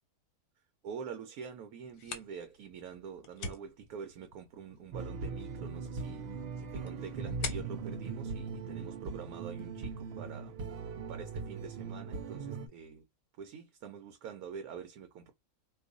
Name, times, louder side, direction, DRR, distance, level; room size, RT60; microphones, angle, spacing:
voice 1, 0.8-10.7 11.1-13.0 13.4-15.3, right 6 dB, 85° right, 1.1 m, -46 dB
sound 1, 1.8-9.3, left 4 dB, 70° left, 1.2 m, -47 dB
sound 2, 4.9-12.7, right 4 dB, 65° right, 0.6 m, -40 dB
2.6 x 2.4 x 3.7 m
omnidirectional pair, 1.5 m